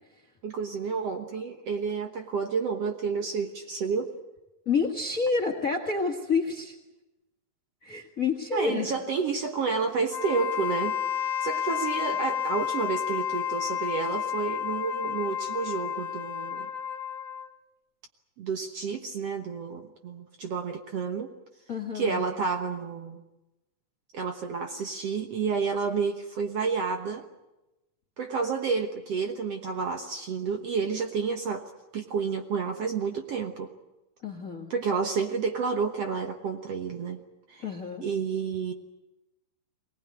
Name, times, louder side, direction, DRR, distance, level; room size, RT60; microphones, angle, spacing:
voice 1, 0.4-4.1 8.5-16.7 18.4-21.3 21.9-23.2 24.1-27.2 28.2-33.7 34.7-37.2 37.5-37.6 38.0-38.7, right 5 dB, 60° right, 5 dB, 1.9 m, -30 dB
voice 2, 4.6-6.7 7.8-8.9 21.7-22.2 34.2-34.7 37.6-38.0, left 4 dB, 35° left, 6 dB, 1.5 m, -29 dB
Wind instrument woodwind instrument, 10.1-17.5, left 9 dB, 85° left, 1.0 m, -31 dB
23.5 x 19.5 x 9.5 m, 0.99 s
omnidirectional pair, 4.0 m